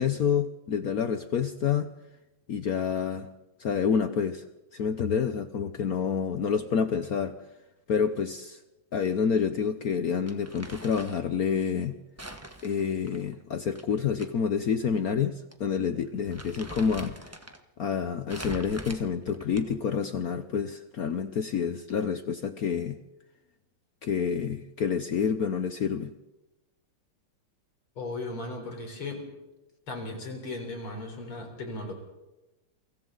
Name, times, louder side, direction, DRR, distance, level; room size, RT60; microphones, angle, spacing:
voice 1, 0.0-1.9 2.5-3.3 3.6-4.4 4.7-7.3 7.9-8.6 8.9-11.9 12.6-17.1 17.8-23.0 24.0-26.1, left 7 dB, 60° left, 10 dB, 1.0 m, -28 dB
Crumpling crinkling, 10.3-11.3 12.2-14.3 14.6-14.7 15.5-15.7 16.0-17.6 18.3-19.9, right 1 dB, 10° right, 0.9 m, -43 dB
voice 2, 28.0-29.3 29.9-31.9, left 2 dB, 75° left, 3 dB, 4.9 m, -36 dB
29.0 x 24.5 x 4.0 m, 1.0 s
omnidirectional pair, 2.3 m